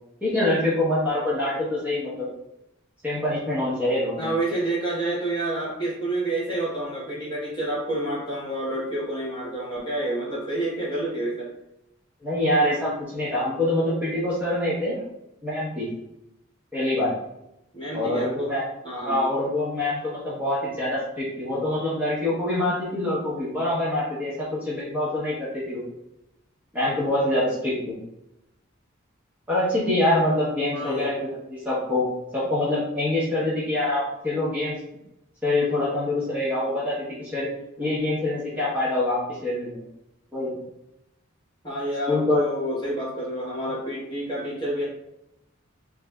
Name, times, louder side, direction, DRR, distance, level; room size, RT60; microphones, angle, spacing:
voice 1, 0.2-2.3 3.0-4.3 12.2-15.0 15.4-15.9 16.7-17.1 17.9-18.6 19.0-25.8 26.7-28.0 29.5-32.1 32.3-34.7 35.4-37.5 37.8-39.8 40.3-40.6 42.1-42.4, left 1 dB, 10° right, -9 dB, 0.9 m, -25 dB
voice 2, 4.2-11.5 17.7-18.5 18.8-19.3 30.7-31.1 41.6-44.8, right 1 dB, 25° left, -7 dB, 1.2 m, -28 dB
3.4 x 3.1 x 2.3 m, 0.86 s
head